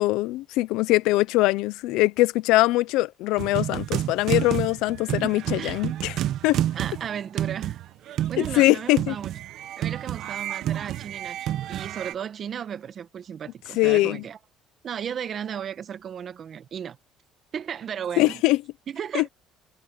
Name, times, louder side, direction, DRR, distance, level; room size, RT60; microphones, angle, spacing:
voice 1, 0.0-6.2 6.4-6.6 8.4-9.1 13.8-14.2 18.2-18.6 19.1-19.2, left 19 dB, 80° left, 0.7 m, -22 dB
sound 1, 3.4-12.1, right 12 dB, 65° right, 1.3 m, -29 dB
voice 2, 5.2-5.8 6.7-7.8 8.1-9.4 9.8-14.4 14.8-17.0 17.5-18.4 18.9-19.3, right 8 dB, 45° right, 1.7 m, -35 dB
cardioid pair, 105°, 0 cm